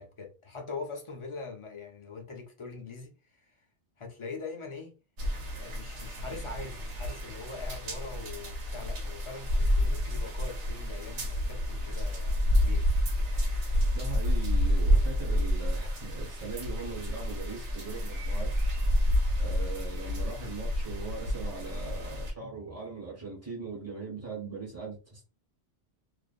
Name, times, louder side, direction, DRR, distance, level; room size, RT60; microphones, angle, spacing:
voice 1, 0.0-3.6 4.0-4.9 5.5-12.9, left 4 dB, 35° left, 0.5 m, -42 dB
sound 1, 5.2-22.3, equal, 90° right, 1.2 m, -29 dB
voice 2, 13.9-18.5 18.9-19.1 19.4-25.2, right 4 dB, 15° right, 1.1 m, -40 dB
2.4 x 2.4 x 2.4 m
omnidirectional pair, 1.1 m